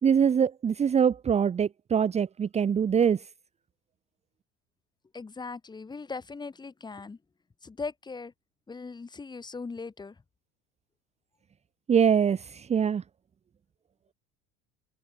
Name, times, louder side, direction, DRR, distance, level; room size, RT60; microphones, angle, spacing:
voice 1, 0.0-3.3 11.9-13.0, right 7 dB, 20° right, 1.4 m, -24 dB
voice 2, 5.1-7.2 7.6-8.3 8.7-10.1, left 4 dB, 15° left, 4.5 m, -39 dB
cardioid pair, 145°, 30 cm